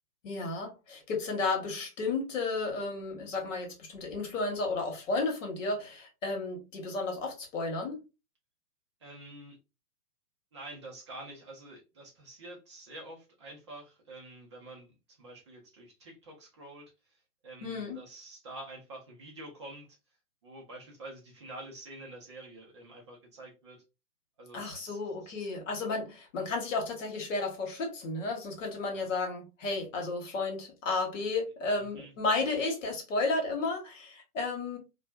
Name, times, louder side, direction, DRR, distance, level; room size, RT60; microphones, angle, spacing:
voice 1, 0.2-8.0 17.6-18.0 24.5-34.8, left 3 dB, 50° left, 1.2 m, -33 dB
voice 2, 9.0-9.6 10.5-19.9 20.4-23.8 24.4-25.3 28.9-29.1 31.8-32.1, right 2 dB, 20° right, 0.4 m, -48 dB
2.5 x 2.2 x 2.3 m
hypercardioid pair, 130°, 48 cm